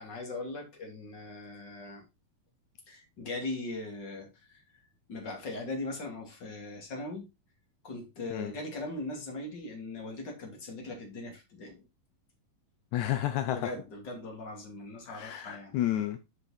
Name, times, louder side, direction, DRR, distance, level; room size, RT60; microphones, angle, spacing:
voice 1, 0.0-2.0 2.9-4.6 5.1-7.3 7.8-11.8 13.5-15.8, left 2 dB, 30° left, 2.8 m, -40 dB
voice 2, 12.9-13.7 15.1-16.2, left 12 dB, 80° left, 1.7 m, -31 dB
8.6 x 5.4 x 4.2 m
omnidirectional pair, 4.3 m